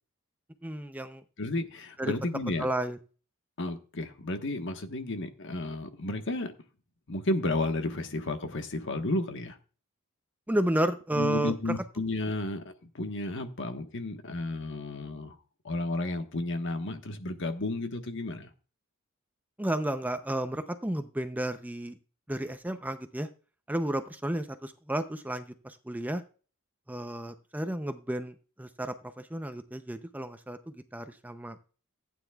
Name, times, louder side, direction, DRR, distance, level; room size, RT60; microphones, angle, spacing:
voice 1, 0.6-1.2 2.0-2.1 2.6-3.0 10.5-11.5 19.6-21.9 22.3-23.3 23.7-26.2 26.9-30.6 30.9-31.6, right 1 dB, 10° right, 0.6 m, -32 dB
voice 2, 1.4-2.7 3.6-6.5 7.1-9.6 11.1-15.4 15.6-18.5, left 2 dB, 60° left, 1.3 m, -32 dB
15.5 x 9.2 x 2.3 m
head